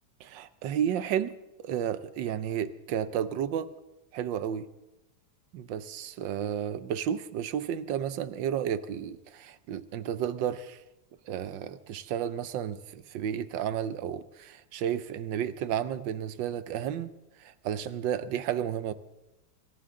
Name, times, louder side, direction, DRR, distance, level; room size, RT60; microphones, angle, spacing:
voice 1, 0.2-3.8 4.1-4.7 5.5-10.8 11.3-17.1 17.4-18.9, right 9 dB, 75° right, 14 dB, 1.4 m, -32 dB
25.5 x 15.0 x 3.7 m, 1.0 s
omnidirectional pair, 2.0 m